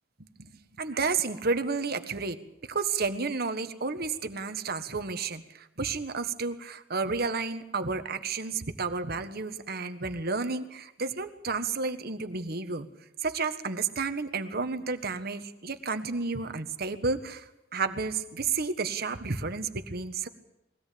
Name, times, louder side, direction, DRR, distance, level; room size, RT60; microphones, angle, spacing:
voice 1, 0.4-2.4 2.7-12.9 13.2-20.3, right 4 dB, 55° right, 9 dB, 1.4 m, -31 dB
22.5 x 17.0 x 8.6 m, 0.89 s
head